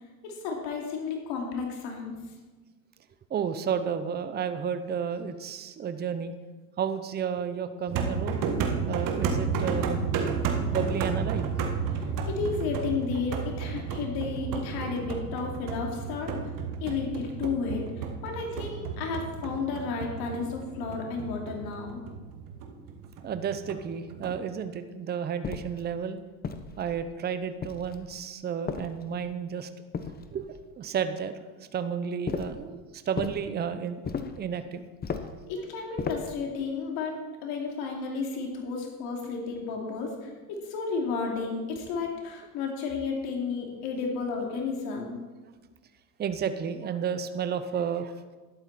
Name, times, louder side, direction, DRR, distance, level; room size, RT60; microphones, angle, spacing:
voice 1, 0.2-2.2 12.0-16.5 16.8-22.0 35.5-37.1 37.4-45.2, left 4 dB, 60° left, 1 dB, 2.9 m, -32 dB
voice 2, 3.3-6.3 6.8-8.4 8.9-10.1 10.7-11.5 23.2-26.2 26.8-29.7 30.3-31.3 31.7-34.0 34.4-34.8 35.2-35.3 46.2-48.1, right 7 dB, 25° right, 10 dB, 0.8 m, -32 dB
sound 1, 7.9-24.4, right 5 dB, 45° right, 1.6 m, -32 dB
sound 2, 25.4-25.8 26.4-27.1 27.6-28.1 28.7-29.3 29.9-30.6 32.3-32.6 33.2-33.4 34.0-34.4 35.0-35.4 36.0-36.4, left 6 dB, 20° left, 0.9 m, -35 dB
12.0 x 11.5 x 4.3 m, 1.3 s
supercardioid pair, 110°, 43 cm